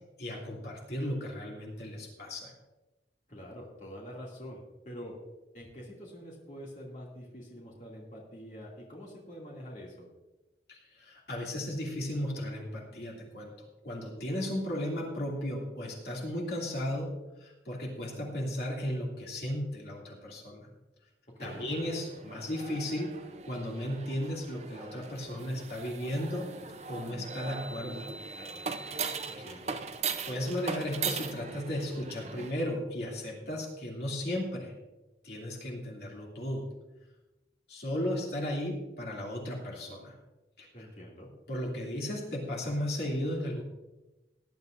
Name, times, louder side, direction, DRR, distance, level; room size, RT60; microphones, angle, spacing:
voice 1, 0.2-2.5 10.7-13.5 13.8-17.1 17.4-20.7 21.4-23.1 23.5-26.5 26.9-28.6 29.4-29.5 30.2-34.7 35.2-36.6 37.7-40.2 40.6-40.9 41.5-43.6, left 1 dB, 65° left, -2 dB, 2.6 m, -35 dB
voice 2, 3.3-5.1 5.5-10.1 21.4-21.7 29.3-29.8 40.7-41.3, equal, 45° left, -3 dB, 2.5 m, -46 dB
sound 1, 21.4-32.5, right 5 dB, 40° right, 0.6 m, -39 dB
18.5 x 11.0 x 2.6 m, 1.1 s
head